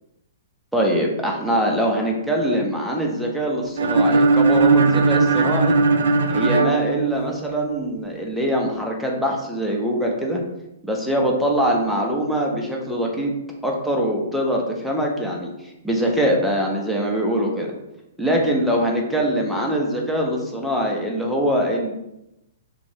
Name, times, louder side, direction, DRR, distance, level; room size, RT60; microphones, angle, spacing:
voice 1, 0.7-5.8 6.3-10.4 10.8-13.3 13.6-17.7 18.2-21.9, equal, ahead, -2 dB, 0.4 m, -23 dB
sound 1, 3.8-7.7, right 3 dB, 75° right, 0.3 m, -18 dB
3.0 x 2.5 x 2.7 m, 0.89 s
hypercardioid pair, 170°, 0 cm